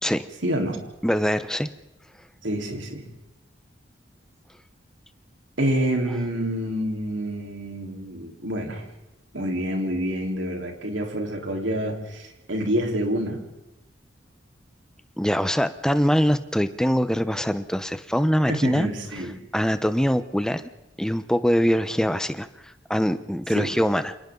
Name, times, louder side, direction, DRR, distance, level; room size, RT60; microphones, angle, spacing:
voice 1, 0.4-0.8 2.4-3.0 5.6-8.8 9.3-13.4 18.5-19.4 23.5-23.7, right 1 dB, 85° right, 1 dB, 4.0 m, -27 dB
voice 2, 1.0-1.7 15.2-18.9 19.5-20.7 21.0-22.5 22.9-24.1, equal, 5° left, 11 dB, 0.9 m, -23 dB
29.5 x 26.5 x 3.9 m, 0.96 s
head